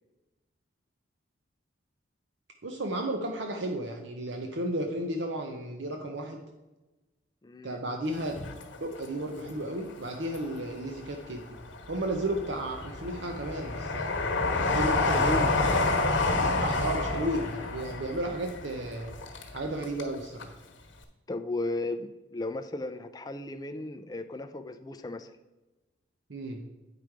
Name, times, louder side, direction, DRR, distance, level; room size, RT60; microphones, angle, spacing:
voice 1, 2.6-6.4 7.6-8.3 8.8-11.6 11.9-14.2 14.7-15.4 16.4-19.1 19.5-20.5 26.3-26.6, right 1 dB, 70° right, 3 dB, 0.7 m, -33 dB
voice 2, 7.4-7.8 15.1-15.6 21.3-25.3, left 2 dB, 20° left, 8 dB, 0.3 m, -35 dB
Train, 8.2-9.4 9.9-10.9 11.4-20.1 20.4-20.5, left 3 dB, 75° left, 1.2 m, -29 dB
8.8 x 5.0 x 4.6 m, 1.1 s
head